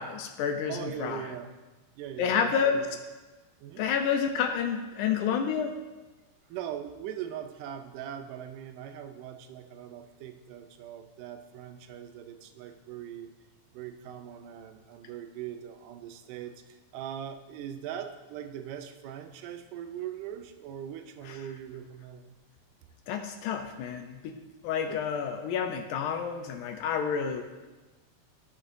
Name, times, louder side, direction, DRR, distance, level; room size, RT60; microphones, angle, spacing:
voice 1, 0.0-1.2 2.2-2.9 3.8-5.8 21.3-21.4 23.1-24.4 24.6-27.4, left 7 dB, 80° left, 5 dB, 1.9 m, -29 dB
voice 2, 0.7-1.5 2.0-2.8 3.6-3.8 6.5-13.3 13.7-22.4, right 10 dB, 80° right, 7 dB, 2.1 m, -41 dB
12.0 x 6.4 x 2.5 m, 1.2 s
omnidirectional pair, 3.9 m